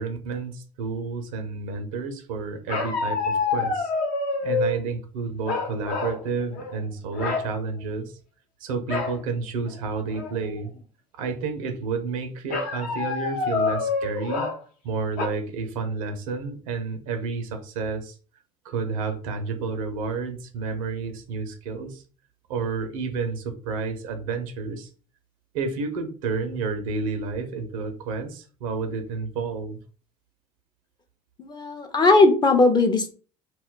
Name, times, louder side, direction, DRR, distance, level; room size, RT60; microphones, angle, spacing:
voice 1, 0.0-3.9 4.4-8.2 8.6-10.7 11.2-14.5 14.8-18.2 18.6-22.0 22.5-24.9 25.5-29.8, right 4 dB, 75° right, 6 dB, 0.7 m, -30 dB
sound 1, 2.7-4.8 5.5-6.2 6.5-6.8 7.1-7.5 8.9-9.2 9.7-9.8 10.1-10.6 12.5-14.6 15.2-15.3, left 4 dB, 60° left, 0.9 m, -27 dB
voice 2, 31.4-33.1, left 3 dB, 25° left, 6 dB, 0.6 m, -18 dB
2.4 x 2.2 x 3.7 m, 0.38 s
hypercardioid pair, 65°, 18 cm